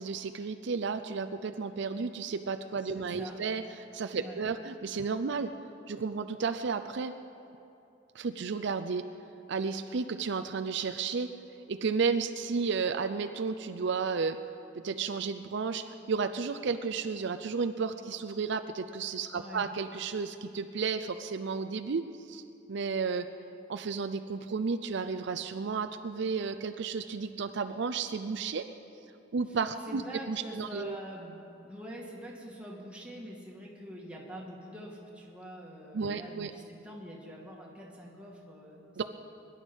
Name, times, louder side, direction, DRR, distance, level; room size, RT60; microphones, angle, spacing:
voice 1, 0.0-3.6 3.9-5.5 5.9-7.1 8.1-9.1 9.5-11.3 11.7-14.4 14.8-22.4 22.7-23.3 23.7-28.7 29.3-30.0 30.3-31.0 35.9-36.5 39.0-39.1, right 5 dB, 65° right, 8 dB, 0.5 m, -32 dB
voice 2, 2.7-3.5 4.2-4.4 19.3-19.7 29.5-29.6 29.8-31.4 31.6-39.0, equal, 5° right, -3 dB, 2.3 m, -45 dB
22.5 x 11.0 x 5.5 m, 2.7 s
head